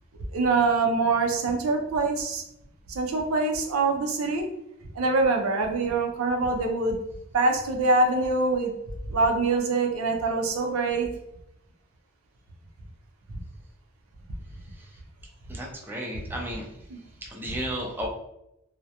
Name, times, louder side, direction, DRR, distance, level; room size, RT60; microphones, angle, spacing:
voice 1, 0.3-2.4 2.9-4.5 5.0-7.0 7.3-8.7 9.1-11.1 16.9-17.0, right 3 dB, 90° right, 3 dB, 0.5 m, -24 dB
voice 2, 15.5-16.7 17.3-18.1, right 1 dB, 10° right, -1 dB, 0.4 m, -33 dB
2.3 x 2.1 x 2.7 m, 0.84 s
head